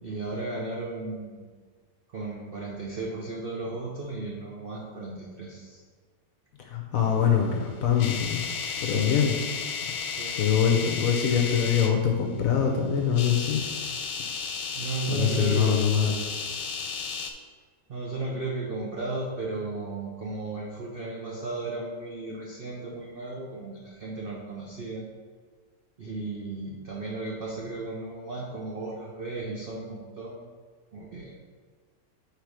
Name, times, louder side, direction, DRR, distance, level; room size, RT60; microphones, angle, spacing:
voice 1, 0.0-1.5 2.1-5.8 8.7-9.2 10.0-10.6 14.2-14.4 14.7-15.8 17.9-25.0 26.0-30.4 30.9-31.3, right 3 dB, 65° right, -2 dB, 0.5 m, -35 dB
voice 2, 6.7-8.5 8.8-9.3 10.2-13.6 15.1-16.1, left 8 dB, 65° left, 1 dB, 0.9 m, -24 dB
sound 1, 7.5-11.9 13.0-17.3, left 6 dB, 90° left, 1.3 m, -33 dB
4.6 x 4.6 x 4.8 m, 1.5 s
omnidirectional pair, 1.9 m